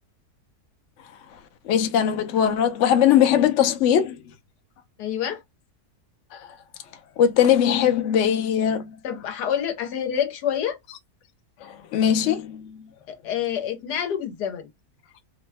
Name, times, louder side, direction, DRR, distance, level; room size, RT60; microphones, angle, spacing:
voice 1, 1.6-4.2 6.3-6.4 7.2-8.9 11.6-12.8, left 9 dB, 60° left, 0.8 m, -20 dB
voice 2, 5.0-5.4 9.0-10.8 13.1-14.7, left 9 dB, 85° left, 1.4 m, -27 dB
3.1 x 2.1 x 3.3 m
omnidirectional pair, 1.7 m